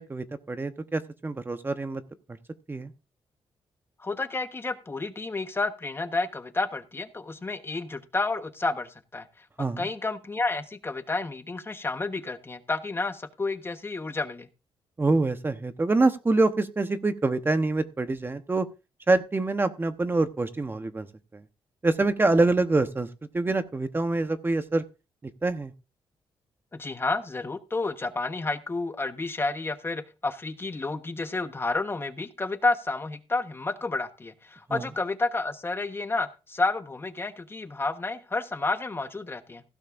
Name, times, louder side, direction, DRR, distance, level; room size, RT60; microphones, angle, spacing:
voice 1, 0.0-2.0 2.7-2.9 9.6-9.9 15.0-18.7 19.1-21.1 21.3-21.4 21.8-23.1 23.3-24.8 25.4-25.7 34.7-34.9, right 2 dB, 20° right, 9 dB, 1.0 m, -25 dB
voice 2, 4.0-14.5 26.7-39.6, left 3 dB, 25° left, 9 dB, 1.1 m, -30 dB
16.0 x 11.5 x 2.6 m, 0.30 s
cardioid pair, 100°, 10 cm